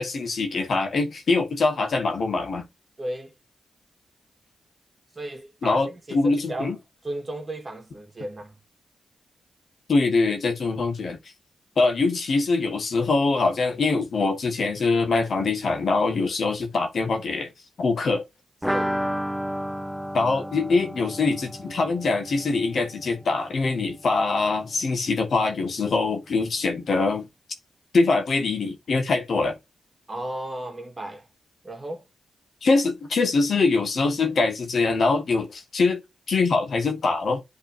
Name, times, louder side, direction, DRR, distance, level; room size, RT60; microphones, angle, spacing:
voice 1, 0.0-2.7 5.6-6.8 9.9-11.2 11.8-17.5 17.8-18.2 20.1-27.3 27.9-29.5 32.6-36.0 36.3-37.4, left 3 dB, 65° left, 1.7 m, -23 dB
voice 2, 3.0-3.3 5.1-6.8 7.0-8.6 16.2-16.3 18.7-19.0 30.1-31.3 31.6-32.1, right 1 dB, 30° right, 2.1 m, -35 dB
sound 1, 18.6-24.2 24.5-24.6 24.9-25.0, equal, ahead, 0.5 m, -32 dB
10.5 x 3.6 x 2.8 m
cardioid pair, 60°, 0 cm